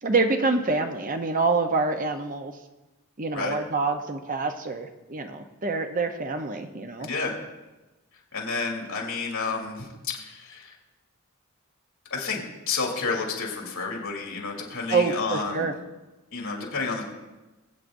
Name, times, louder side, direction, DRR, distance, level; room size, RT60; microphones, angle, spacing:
voice 1, 0.0-2.5 3.2-7.1 14.9-15.7, right 3 dB, 40° right, 6 dB, 0.8 m, -26 dB
voice 2, 7.0-7.3 8.3-9.9 10.1-10.8 12.1-15.7 16.3-17.0, left 4 dB, 75° left, -1 dB, 2.7 m, -30 dB
21.5 x 8.6 x 2.6 m, 1.1 s
head